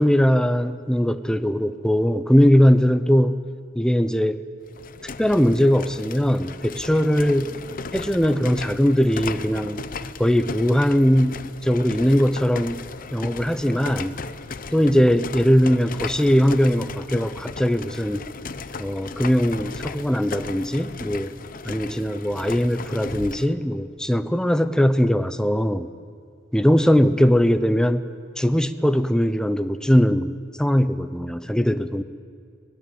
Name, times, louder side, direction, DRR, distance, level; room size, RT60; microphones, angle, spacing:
voice 1, 0.0-3.4 3.7-4.4 5.2-7.6 7.9-9.8 10.2-12.8 13.1-14.2 14.7-18.2 18.8-21.3 21.6-25.9 26.5-28.0 28.4-32.0, equal, 5° left, 11 dB, 0.7 m, -20 dB
sound 1, 4.7-23.5, left 4 dB, 50° left, 0.7 m, -36 dB
22.5 x 18.5 x 7.8 m, 2.2 s
head